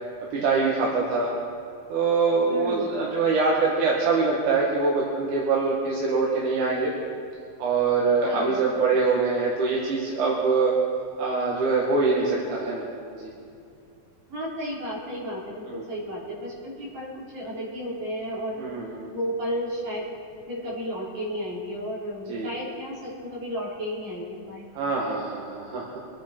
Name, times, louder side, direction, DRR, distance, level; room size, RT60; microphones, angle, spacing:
voice 1, 0.3-1.3 1.9-6.9 7.6-10.8 11.2-12.9 13.1-13.3 15.7-15.8 18.6-19.1 22.3-22.5 24.7-26.0, right 4 dB, 80° right, -4 dB, 3.0 m, -24 dB
voice 2, 2.5-2.9 8.2-8.7 14.3-18.6 19.0-20.0 20.5-24.7, equal, 60° right, -6 dB, 5.1 m, -33 dB
24.5 x 9.9 x 4.4 m, 2.4 s
omnidirectional pair, 3.5 m